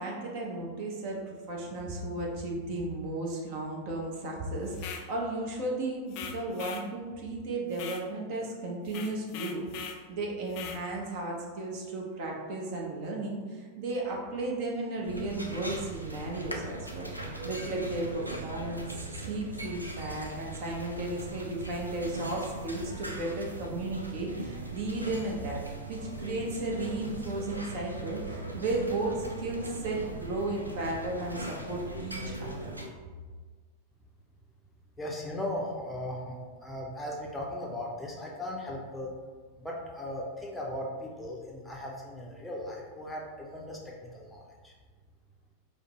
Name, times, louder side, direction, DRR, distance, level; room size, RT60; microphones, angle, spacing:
voice 1, 0.0-18.8 19.1-25.6 25.9-32.7, right 2 dB, 45° right, -1 dB, 0.7 m, -34 dB
sound 1, 4.7-5.1 6.1-6.9 7.7-8.1 8.9-10.0 10.5-10.8, left 7 dB, 40° left, 0.3 m, -41 dB
sound 2, 15.0-32.9, right 2 dB, 85° right, 0.4 m, -39 dB
voice 2, 35.0-39.1 39.6-44.7, left 1 dB, 5° left, -3 dB, 0.6 m, -38 dB
4.9 x 2.0 x 3.0 m, 1.5 s
figure-of-eight pair, 90°, 0 cm